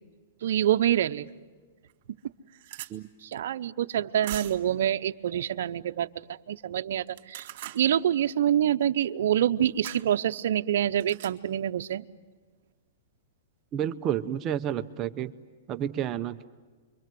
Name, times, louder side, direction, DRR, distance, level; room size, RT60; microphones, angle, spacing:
voice 1, 0.4-1.3 3.2-7.5 7.7-12.0, right 10 dB, 70° right, 10 dB, 0.8 m, -26 dB
sound 1, 1.3-1.4 1.9-2.0 2.2-2.9 4.2-4.7 7.1-7.8 9.8-10.0 11.0-11.3, right 14 dB, 50° right, 2.5 m, -40 dB
voice 2, 13.7-15.3 15.7-16.5, right 10 dB, 30° right, 9 dB, 0.7 m, -30 dB
29.0 x 24.0 x 7.8 m, 1.4 s
hypercardioid pair, 145°, 0 cm